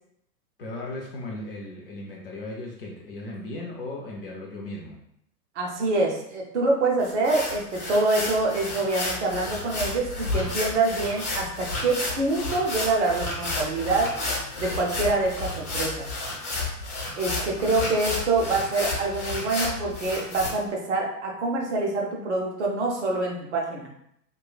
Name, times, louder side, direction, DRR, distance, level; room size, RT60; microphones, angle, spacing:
voice 1, 0.6-5.0 17.5-17.8, left 2 dB, 35° left, -2 dB, 0.5 m, -37 dB
voice 2, 5.6-14.1 14.6-16.1 17.2-23.9, right 2 dB, 45° right, -1 dB, 0.6 m, -26 dB
sound 1, 7.0-20.5, left 2 dB, 60° left, 1.0 m, -31 dB
3.0 x 2.2 x 2.2 m, 0.74 s
figure-of-eight pair, 105°, 49 cm